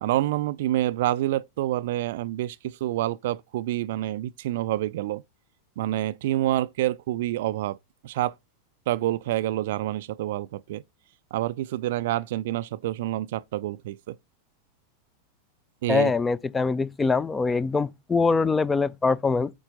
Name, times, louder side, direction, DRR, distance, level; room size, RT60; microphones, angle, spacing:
voice 1, 0.0-5.2 5.8-7.8 8.0-8.3 8.9-10.8 11.3-14.2 15.8-16.1, right 14 dB, 55° right, 0.3 m, -27 dB
voice 2, 15.9-19.5, left 4 dB, 15° left, 0.4 m, -23 dB
8.5 x 4.4 x 3.8 m
figure-of-eight pair, 90°, 0 cm